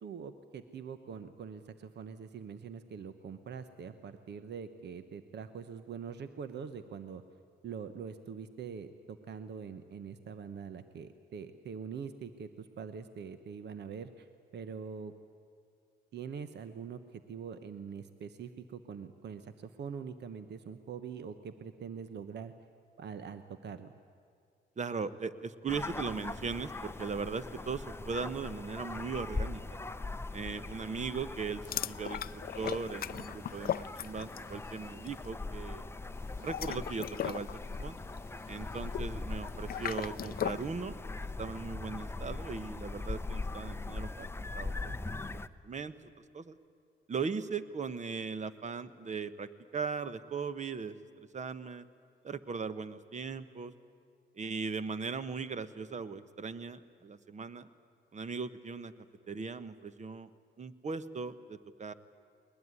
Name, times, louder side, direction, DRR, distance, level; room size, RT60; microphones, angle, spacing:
voice 1, 0.0-7.2 7.6-14.3 14.5-15.1 16.1-22.5 23.0-23.9, right 6 dB, 60° right, 11 dB, 1.1 m, -44 dB
voice 2, 24.8-29.6 30.3-35.9 36.4-37.5 37.8-38.0 38.5-41.0 41.4-44.9 45.6-45.9 46.3-46.6 47.1-51.8 52.2-53.7 54.3-57.7 58.1-58.9 59.3-60.3 60.6-61.9, right 5 dB, 35° right, 13 dB, 1.2 m, -38 dB
sound 1, 25.7-45.5, left 3 dB, 10° left, 0.7 m, -41 dB
sound 2, 31.6-34.6 34.8-35.1 36.3-40.7, left 10 dB, 50° left, 0.5 m, -38 dB
21.0 x 20.5 x 9.8 m, 2.3 s
cardioid pair, 90°, 20 cm